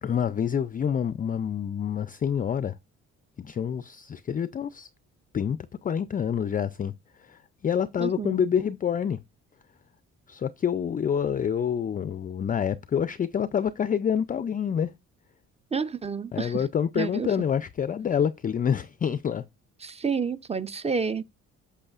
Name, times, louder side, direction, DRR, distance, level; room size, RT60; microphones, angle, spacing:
voice 1, 0.0-2.7 3.4-4.9 5.3-5.6 5.8-6.9 7.2-9.2 10.3-14.9 16.3-19.4, left 8 dB, 30° left, 0.4 m, -27 dB
voice 2, 8.0-8.4 15.7-16.6 17.0-17.3 19.8-21.2, right 5 dB, 20° right, 0.6 m, -29 dB
7.7 x 6.4 x 2.4 m
cardioid pair, 90°, 30 cm